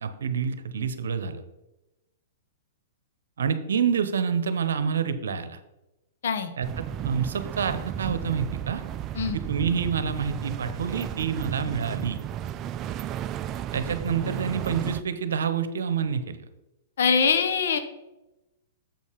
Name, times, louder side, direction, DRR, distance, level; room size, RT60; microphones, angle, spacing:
voice 1, 0.0-1.4 3.4-5.6 6.6-8.8 9.3-12.2 13.7-16.4, right 6 dB, 80° right, 11 dB, 0.9 m, -28 dB
sound 1, 6.6-15.0, right 11 dB, 30° right, 0.4 m, -33 dB
voice 2, 17.0-17.8, left 6 dB, 70° left, 9 dB, 1.0 m, -23 dB
7.3 x 5.4 x 5.2 m, 0.97 s
hypercardioid pair, 125°, 0 cm